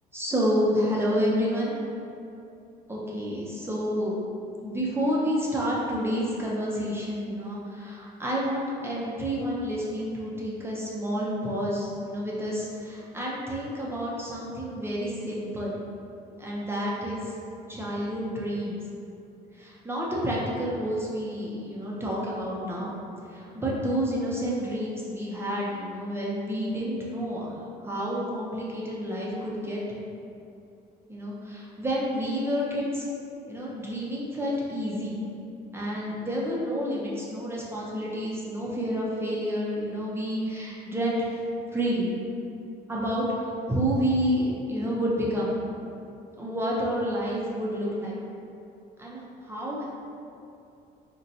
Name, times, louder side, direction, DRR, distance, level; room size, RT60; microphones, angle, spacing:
voice 1, 0.1-1.7 2.9-4.1 4.6-15.7 16.4-17.2 17.7-18.8 19.6-22.9 23.3-27.5 27.8-29.8 31.1-33.0 33.5-35.2 35.7-41.4 41.7-42.1 42.9-45.6 46.4-48.2 49.0-49.8, equal, 15° right, -6 dB, 0.6 m, -29 dB
2.7 x 2.2 x 3.9 m, 2.6 s
cardioid pair, 110°, 17 cm